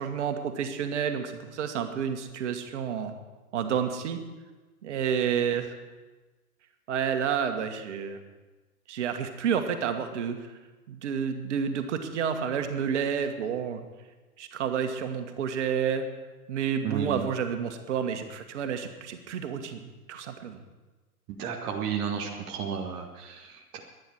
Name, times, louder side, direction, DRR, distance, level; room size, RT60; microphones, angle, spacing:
voice 1, 0.0-3.1 3.5-4.2 4.8-5.7 6.9-8.2 8.9-10.5 10.9-13.9 14.4-16.1 16.5-20.6, right 7 dB, 50° right, 7 dB, 1.6 m, -30 dB
voice 2, 16.8-17.2 21.3-23.8, right 7 dB, 10° right, 2 dB, 0.4 m, -33 dB
22.0 x 9.5 x 4.7 m, 1.2 s
figure-of-eight pair, 105°, 46 cm